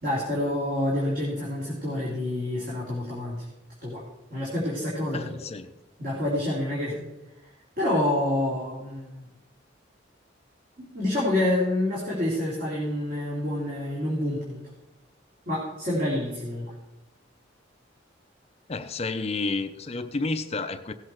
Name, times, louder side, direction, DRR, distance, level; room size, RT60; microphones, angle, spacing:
voice 1, 0.0-3.4 3.8-4.0 4.3-5.2 6.0-7.0 7.8-9.2 10.8-14.6 15.5-16.7, left 1 dB, 50° right, 2.9 m, -27 dB
voice 2, 5.1-5.7 18.7-20.9, left 3 dB, 35° left, 0.5 m, -30 dB
16.5 x 7.7 x 4.5 m
head